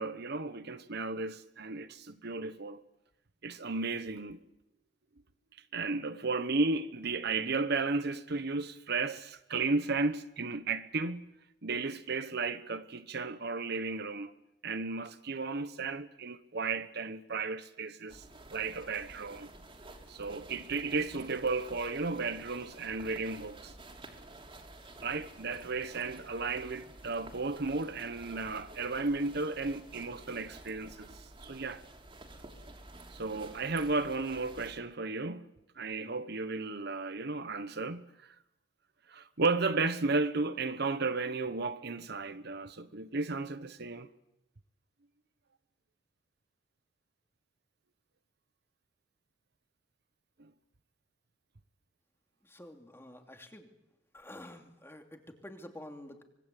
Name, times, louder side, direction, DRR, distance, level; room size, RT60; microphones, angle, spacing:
voice 1, 0.0-2.8 3.4-4.4 5.7-11.3 11.6-14.3 14.6-18.2 18.5-19.5 20.1-23.7 25.0-31.8 33.1-35.5 35.8-38.3 39.1-44.1 50.4-50.5, right 3 dB, 60° right, 1.1 m, -34 dB
sound 1, 18.1-34.8, right 2 dB, 30° right, 3.3 m, -51 dB
voice 2, 52.4-53.7 54.1-56.2, left 1 dB, 15° left, 2.7 m, -49 dB
25.0 x 22.5 x 8.4 m
head